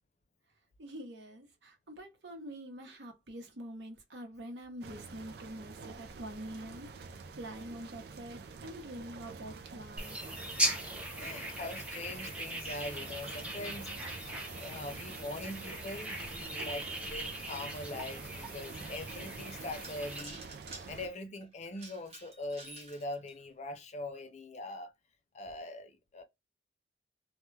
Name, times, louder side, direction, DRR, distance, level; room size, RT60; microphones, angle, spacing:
voice 1, 0.8-10.3, right 1 dB, 80° right, 0.8 m, -46 dB
sound 1, 4.8-21.1, right 4 dB, 60° right, 0.4 m, -48 dB
sound 2, 10.0-20.2, right 1 dB, 5° right, 0.5 m, -39 dB
voice 2, 11.2-14.3 14.6-20.4 20.9-24.9 25.3-26.2, left 2 dB, 40° left, 0.5 m, -42 dB
sound 3, 12.5-16.0 16.6-16.7 17.2-17.3 17.9-18.0 19.1-19.2 19.6-23.4, right 3 dB, 35° right, 0.8 m, -53 dB
2.2 x 2.1 x 3.1 m
head